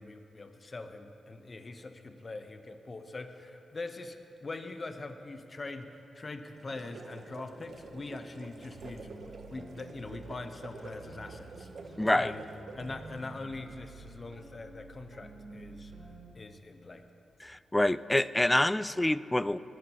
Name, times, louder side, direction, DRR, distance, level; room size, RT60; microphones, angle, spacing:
voice 1, 0.0-9.1 9.5-12.4 12.7-15.9 16.3-17.0, left 3 dB, 40° left, 7 dB, 1.0 m, -42 dB
sound 1, 6.5-13.3, right 3 dB, 70° right, 1.0 m, -48 dB
sound 2, 7.6-7.9 8.5-10.4 10.7-16.3, right 3 dB, 85° right, 2.6 m, -50 dB
voice 2, 12.0-12.3 17.4-19.6, left 1 dB, 15° left, 17 dB, 0.3 m, -26 dB
20.5 x 11.0 x 3.0 m, 3.0 s
cardioid pair, 55°, 0 cm